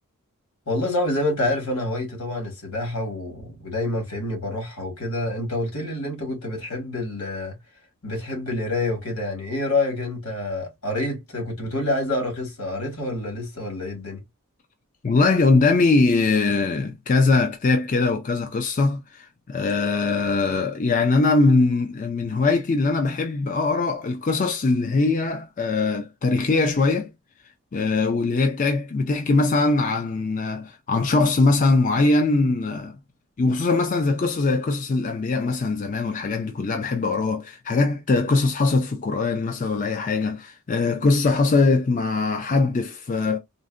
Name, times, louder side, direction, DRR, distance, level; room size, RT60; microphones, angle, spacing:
voice 1, 0.7-7.6 8.0-14.2, left 2 dB, 80° left, 1.7 m, -27 dB
voice 2, 15.0-27.1 27.7-33.0 33.4-43.4, left 3 dB, 35° left, 0.4 m, -21 dB
3.8 x 2.1 x 2.4 m
head